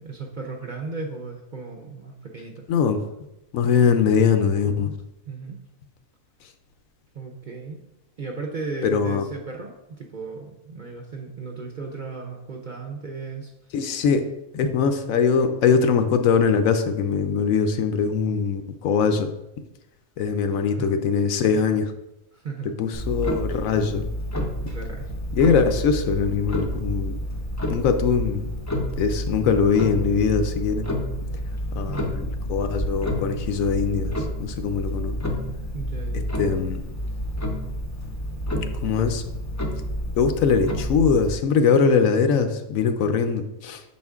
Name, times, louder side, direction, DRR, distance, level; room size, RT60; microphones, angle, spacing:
voice 1, 0.0-2.7 5.2-5.6 7.1-7.8 8.2-13.5 20.4-20.9 22.3-22.8 24.7-25.1 31.8-32.0 35.7-36.3, right 4 dB, 50° right, 0 dB, 0.6 m, -35 dB
voice 2, 2.7-3.0 3.5-4.9 8.8-9.3 13.7-14.3 14.5-19.3 20.2-21.9 22.8-24.1 25.3-27.2 27.7-28.5 29.0-30.9 31.7-35.1 36.4-36.8 38.8-39.2 40.2-43.8, left 6 dB, 75° left, 8 dB, 1.0 m, -22 dB
Clock, 22.9-41.4, equal, 20° left, 0.5 m, -29 dB
6.4 x 4.3 x 3.5 m, 0.91 s
omnidirectional pair, 1.5 m